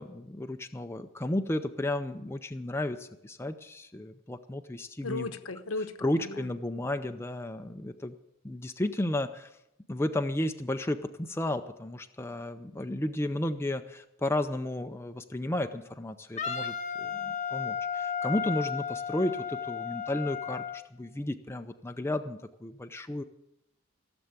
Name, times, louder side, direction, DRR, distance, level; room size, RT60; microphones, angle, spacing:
voice 1, 0.0-5.3 6.0-8.1 8.4-9.5 9.9-23.2, left 1 dB, 10° left, 6 dB, 0.5 m, -33 dB
voice 2, 5.0-5.9 6.2-6.5, left 3 dB, 70° left, 9 dB, 1.0 m, -35 dB
Wind instrument woodwind instrument, 16.4-20.8, left 7 dB, 35° left, 1.0 m, -34 dB
16.0 x 7.0 x 8.9 m, 0.84 s
head